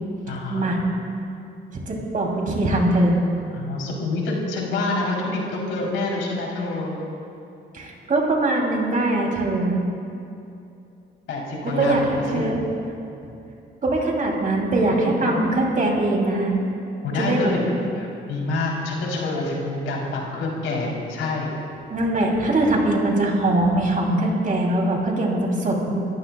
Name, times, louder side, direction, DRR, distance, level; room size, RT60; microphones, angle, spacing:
voice 1, 0.3-0.6 3.5-7.0 11.3-12.5 14.8-15.4 17.0-17.7 18.0-21.5, left 2 dB, 85° left, -3 dB, 3.8 m, -27 dB
voice 2, 1.7-3.2 7.7-9.7 11.8-12.6 13.8-16.5 17.2-17.5 21.9-25.9, right 2 dB, 45° right, -1 dB, 3.2 m, -22 dB
29.0 x 14.5 x 2.4 m, 2.7 s
cardioid pair, 90°, 20 cm